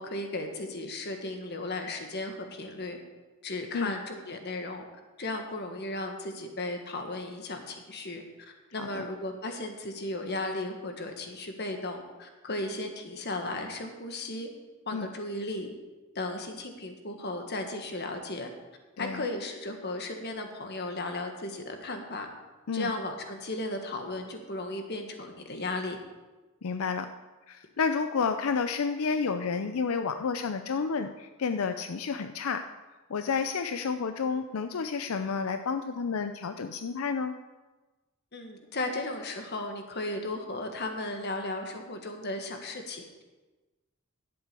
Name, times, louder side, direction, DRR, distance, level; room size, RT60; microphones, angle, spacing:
voice 1, 0.0-3.0 3.4-4.8 5.2-8.2 8.7-14.5 14.8-15.7 16.1-18.5 19.0-22.3 22.7-26.0 38.3-43.2, left 2 dB, 50° left, 5 dB, 1.6 m, -35 dB
voice 2, 26.6-27.1 27.5-32.6 33.1-37.3, left 5 dB, 85° left, 8 dB, 0.5 m, -30 dB
11.5 x 7.8 x 6.8 m, 1.2 s
head